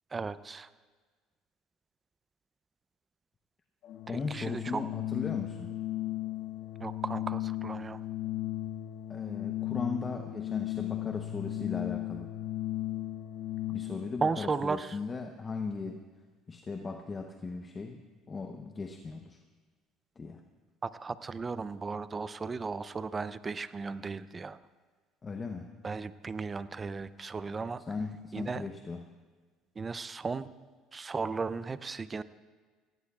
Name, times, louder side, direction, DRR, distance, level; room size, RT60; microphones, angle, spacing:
voice 1, 0.1-0.7 4.1-4.8 6.8-8.0 14.2-15.0 20.8-24.6 25.8-27.8 28.3-28.6 29.8-30.5 30.9-32.2, right 4 dB, 25° right, 15 dB, 0.5 m, -35 dB
Organ, 3.8-14.2, left 14 dB, 60° left, 0.6 m, -36 dB
voice 2, 4.1-5.7 9.1-12.3 13.7-16.0 16.5-18.0 18.3-19.4 20.2-20.4 25.2-25.7 27.9-29.1, left 4 dB, 30° left, 5 dB, 0.8 m, -37 dB
18.5 x 16.0 x 2.4 m, 1.5 s
supercardioid pair, 95°, 0 cm